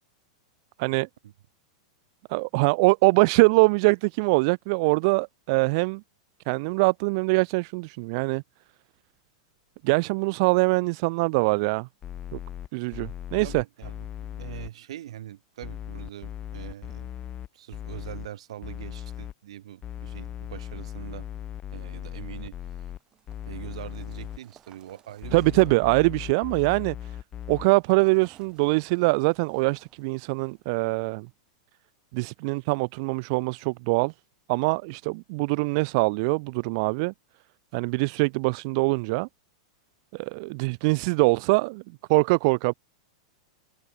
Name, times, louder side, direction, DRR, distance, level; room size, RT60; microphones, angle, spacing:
voice 1, 2.3-6.0 6.5-8.4 9.8-11.9 12.3-12.4 12.7-13.6 25.3-27.1 27.5-31.3 32.1-34.1 34.5-37.1 37.7-39.3 40.1-41.8 42.1-42.7, right 29 dB, 50° right, 0.5 m, -23 dB
sound 1, 12.0-14.7 15.6-18.3 18.6-19.3 19.8-23.0 23.3-24.4 25.2-27.7, left 11 dB, 25° left, 0.6 m, -38 dB
voice 2, 13.4-17.1 17.5-21.3 21.7-22.9 23.5-25.7, right 12 dB, 75° right, 2.9 m, -43 dB
sound 2, 22.4-31.3, right 9 dB, 25° right, 3.6 m, -61 dB
supercardioid pair, 140°, 3 cm